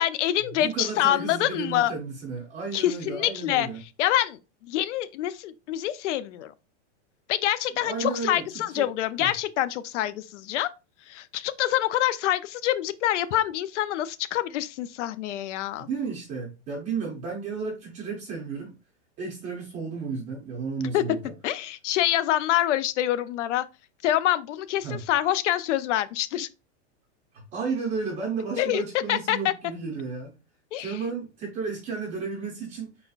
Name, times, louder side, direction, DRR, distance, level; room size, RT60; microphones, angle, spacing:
voice 1, 0.0-1.9 2.7-6.5 7.3-10.7 11.1-15.9 20.9-21.0 21.4-23.6 24.0-26.5 28.6-28.8 29.1-29.5 30.7-31.0, left 13 dB, 75° left, 0.5 m, -26 dB
voice 2, 0.5-3.8 7.7-8.9 9.2-9.3 15.8-18.7 19.2-21.3 24.8-25.1 27.3-30.4 30.8-32.9, right 5 dB, 20° right, 0.6 m, -33 dB
4.4 x 4.2 x 2.3 m
supercardioid pair, 170°, 36 cm